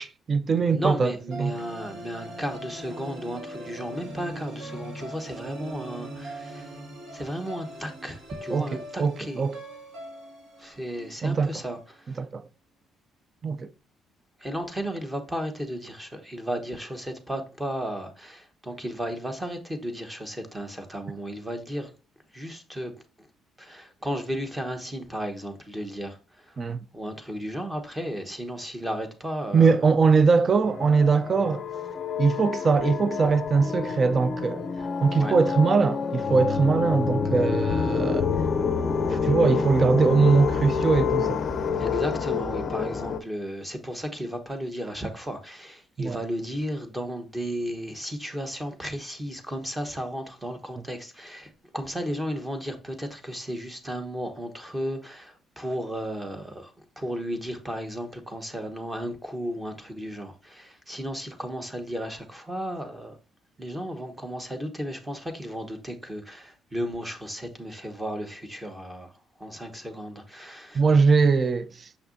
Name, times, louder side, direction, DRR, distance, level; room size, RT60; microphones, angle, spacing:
voice 1, 0.0-1.6 8.5-9.6 11.2-11.6 12.2-12.4 13.4-13.7 26.6-26.8 29.5-31.6 32.2-34.7 35.0-38.3 39.1-41.4 46.0-46.2 70.7-71.9, right 4 dB, 30° right, 0.4 m, -22 dB
voice 2, 0.7-6.7 7.1-9.4 10.6-11.8 14.4-21.9 22.3-22.9 23.6-26.2 26.9-29.8 35.2-35.3 41.8-56.7 57.0-63.2 63.6-69.1 69.4-70.8, equal, 10° right, 1.0 m, -34 dB
Sytrus with harmony, 1.3-11.6, right 1 dB, 80° right, 2.2 m, -41 dB
sound 1, 30.6-43.2, left 5 dB, 40° left, 0.5 m, -27 dB
6.4 x 5.6 x 2.6 m
cardioid pair, 140°, 0 cm